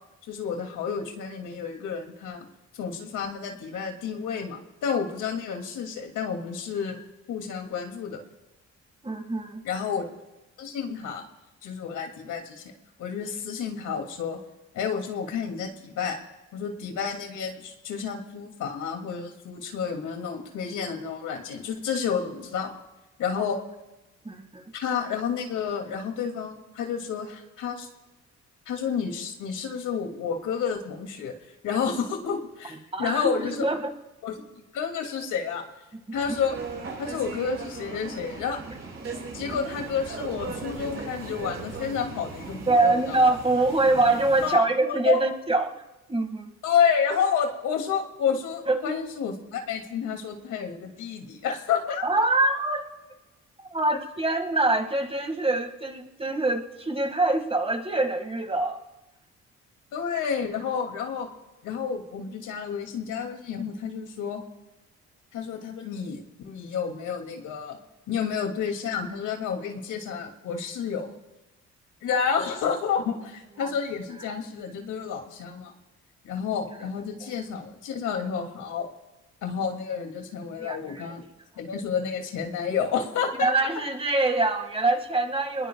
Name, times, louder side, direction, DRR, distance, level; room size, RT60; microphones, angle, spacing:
voice 1, 0.3-2.5 2.7-7.0 7.3-8.2 9.6-10.0 10.6-11.2 11.6-12.6 13.0-14.4 14.7-16.2 16.5-22.7 23.2-23.6 24.7-27.9 28.7-31.3 31.6-33.6 34.2-34.3 34.7-35.6 36.1-36.6 37.0-38.6 39.3-43.2 44.4-45.2 46.6-52.1 59.9-61.3 61.6-64.4 65.3-67.8 68.1-71.1 72.0-75.7 76.2-78.9 79.4-81.2 81.6-83.5, left 7 dB, 80° left, 3 dB, 2.7 m, -30 dB
voice 2, 9.0-9.6 24.2-24.7 32.9-33.9 42.7-45.8 46.1-46.5 48.7-48.9 52.0-52.9 53.6-58.8 73.6-73.8 80.6-81.2 83.4-85.7, right 2 dB, 20° right, 5 dB, 2.0 m, -24 dB
sound 1, 36.1-44.6, right 4 dB, 45° right, 5.1 m, -38 dB
29.5 x 21.0 x 2.4 m, 1.0 s
cardioid pair, 90°, 30 cm